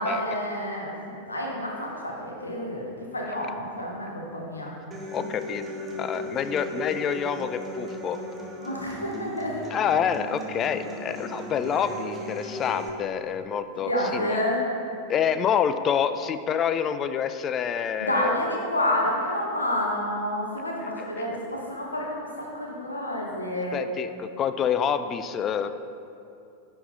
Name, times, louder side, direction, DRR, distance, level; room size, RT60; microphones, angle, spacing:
voice 1, 0.0-4.8 8.6-9.7 13.8-14.6 18.0-23.8, left 1 dB, 80° left, -1 dB, 1.2 m, -29 dB
Human voice / Acoustic guitar, 4.9-12.9, equal, 15° right, 0.9 m, -37 dB
voice 2, 5.1-5.6 6.0-8.2 9.7-14.4 15.1-18.4 21.0-21.1 23.7-25.7, left 8 dB, 30° left, 11 dB, 0.3 m, -27 dB
9.9 x 3.9 x 4.0 m, 2.6 s
figure-of-eight pair, 90°, 0 cm